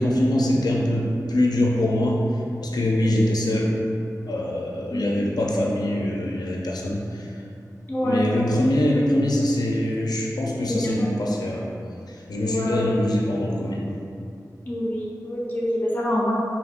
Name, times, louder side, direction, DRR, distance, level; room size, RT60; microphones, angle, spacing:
voice 1, 0.0-3.8 4.3-7.3 8.0-11.7 12.1-13.9, left 1 dB, 80° left, -2 dB, 0.4 m, -23 dB
voice 2, 7.9-8.3 10.7-11.1 12.4-12.9 14.6-16.3, equal, 25° left, -6 dB, 0.7 m, -26 dB
5.0 x 2.8 x 2.4 m, 2.5 s
wide cardioid pair, 75°, 7 cm